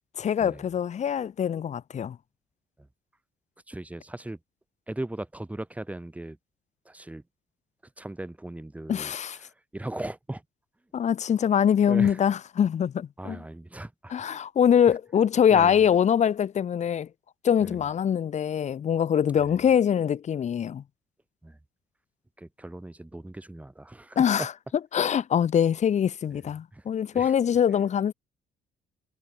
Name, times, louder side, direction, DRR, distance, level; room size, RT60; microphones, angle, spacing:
voice 1, 0.2-2.2 8.9-9.4 10.9-13.4 14.1-17.1 17.4-20.8 24.1-24.5 24.9-28.1, left 8 dB, 45° left, 1.6 m, -23 dB
voice 2, 3.7-4.4 4.9-6.4 6.8-7.2 8.0-9.2 9.4-10.4 11.9-12.2 13.2-14.4 15.5-15.8 17.6-17.8 19.4-19.6 21.4-21.6 22.4-24.5 26.7-26.8 27.1-27.3, right 1 dB, 10° right, 6.3 m, -38 dB
cardioid pair, 110°, 17 cm